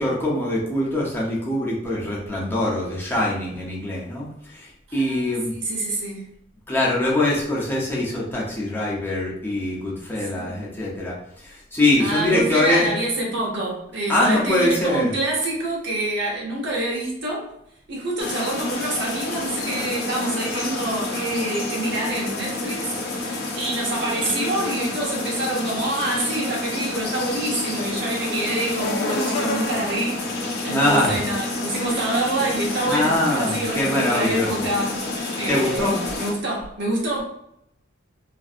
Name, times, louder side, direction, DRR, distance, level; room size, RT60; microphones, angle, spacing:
voice 1, 0.0-5.5 6.7-12.9 14.1-15.1 30.7-31.2 32.8-34.5 35.5-36.0, left 1 dB, 10° left, -5 dB, 0.8 m, -23 dB
voice 2, 4.9-5.3 5.6-6.2 10.3-10.6 12.0-17.5 17.9-30.2 30.6-37.2, right 2 dB, 60° right, -3 dB, 1.0 m, -27 dB
sound 1, 18.2-36.3, left 2 dB, 55° left, 0.6 m, -28 dB
3.0 x 2.6 x 2.5 m, 0.77 s
head